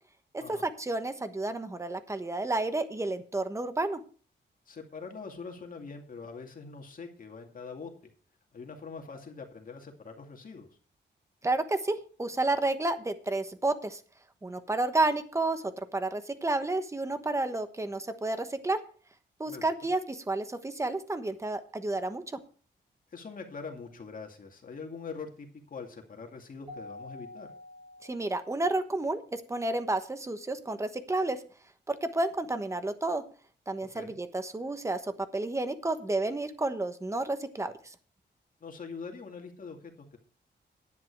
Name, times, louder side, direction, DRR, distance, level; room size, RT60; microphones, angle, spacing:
voice 1, 0.3-4.0 11.4-14.0 14.4-18.8 19.4-22.4 28.0-31.4 31.9-33.2 33.7-35.0 35.3-37.7, right 2 dB, 15° right, 9 dB, 1.2 m, -31 dB
voice 2, 4.7-7.9 8.5-10.7 19.5-19.7 23.1-27.5 33.9-34.1 38.6-40.2, left 5 dB, 50° left, 3 dB, 2.4 m, -43 dB
Keyboard (musical), 26.7-28.9, left 2 dB, 35° right, 3.9 m, -48 dB
11.0 x 9.7 x 4.7 m, 0.40 s
wide cardioid pair, 120°, 19 cm